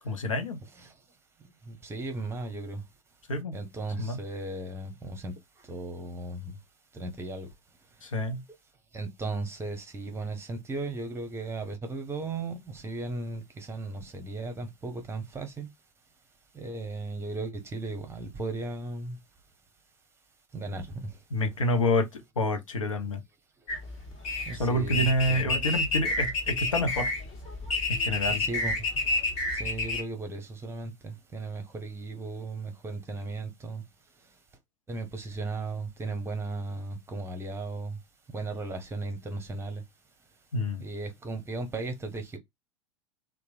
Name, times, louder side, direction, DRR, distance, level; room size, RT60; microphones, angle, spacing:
voice 1, 0.0-0.6 3.3-3.6 4.0-4.2 8.0-8.4 21.3-23.2 24.6-27.1 27.9-28.4 40.5-40.8, left 1 dB, 80° left, 0.6 m, -28 dB
voice 2, 1.7-2.8 3.5-5.3 5.7-6.5 6.9-7.5 8.9-15.7 16.5-19.2 20.5-21.1 24.5-25.5 28.4-28.7 29.5-33.8 34.9-38.0 38.3-39.8 40.8-42.4, right 3 dB, 15° right, 0.9 m, -36 dB
sound 1, 23.7-30.0, left 3 dB, 40° left, 1.5 m, -29 dB
2.9 x 2.2 x 2.4 m
figure-of-eight pair, 85°, 17 cm